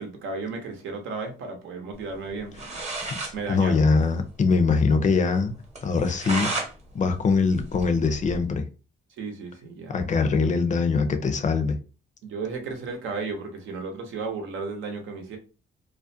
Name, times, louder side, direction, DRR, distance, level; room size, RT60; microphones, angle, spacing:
voice 1, 0.0-2.7 3.3-3.8 9.2-10.0 12.2-15.4, right 4 dB, 80° right, 0.8 m, -34 dB
sound 1, 2.3-2.4 2.5-3.4 3.7-3.8 4.0-4.1 4.5-4.6 5.0-5.1 5.8-6.7 7.1-8.4, right 2 dB, 35° right, 0.9 m, -32 dB
voice 2, 3.5-5.5 5.8-6.5 6.9-8.6 9.9-11.8, left 4 dB, 40° left, 0.5 m, -22 dB
2.4 x 2.1 x 2.6 m
cardioid pair, 90°, 20 cm